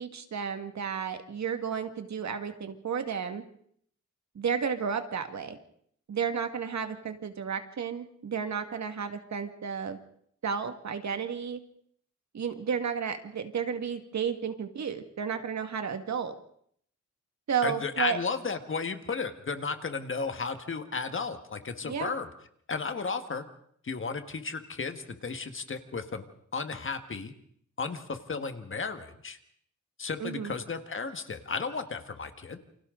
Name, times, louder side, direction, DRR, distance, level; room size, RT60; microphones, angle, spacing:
voice 1, 0.0-3.4 4.4-5.6 6.1-10.0 10.4-11.6 12.3-16.3 17.5-18.2 21.9-22.1 30.2-30.5, right 7 dB, 65° right, 7 dB, 1.9 m, -32 dB
voice 2, 17.6-22.3 22.7-23.4 23.8-26.3 26.5-27.3 27.8-29.4 30.0-32.6, left 4 dB, 40° left, 8 dB, 1.7 m, -34 dB
28.5 x 25.0 x 3.9 m, 0.65 s
wide cardioid pair, 120°, 30 cm